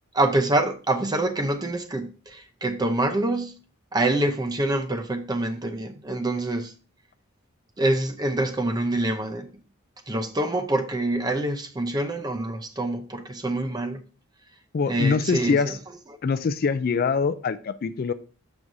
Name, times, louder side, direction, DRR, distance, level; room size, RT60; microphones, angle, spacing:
voice 1, 0.1-3.6 3.9-6.7 7.8-9.5 10.1-14.0 14.9-15.8, right 2 dB, 20° right, 0.6 m, -26 dB
voice 2, 14.7-15.8 16.2-18.1, left 5 dB, 45° left, 0.3 m, -24 dB
7.2 x 6.1 x 2.6 m
head